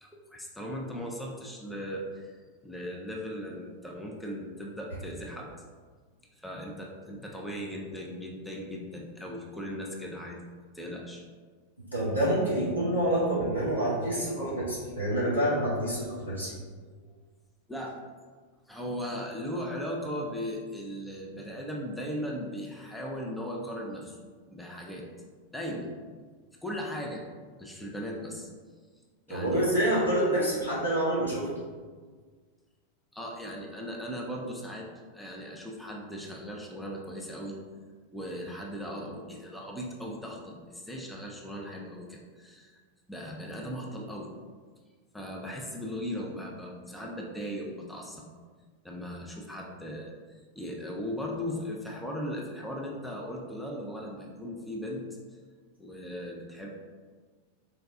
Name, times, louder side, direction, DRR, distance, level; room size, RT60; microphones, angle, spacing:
voice 1, 0.0-2.4 2.6-5.5 6.4-10.4 10.7-11.2 17.7-18.0 18.7-24.2 24.5-25.0 25.5-25.9 26.6-27.2 27.6-28.5 29.3-29.6 33.1-34.9 35.1-37.5 38.1-42.8 43.1-44.3 45.1-48.2 48.8-55.0 55.8-56.7, equal, 5° left, -2 dB, 0.5 m, -38 dB
voice 2, 11.9-16.5 29.3-31.5, right 1 dB, 85° left, -8 dB, 1.4 m, -27 dB
4.0 x 2.3 x 3.5 m, 1.5 s
figure-of-eight pair, 90°, 0 cm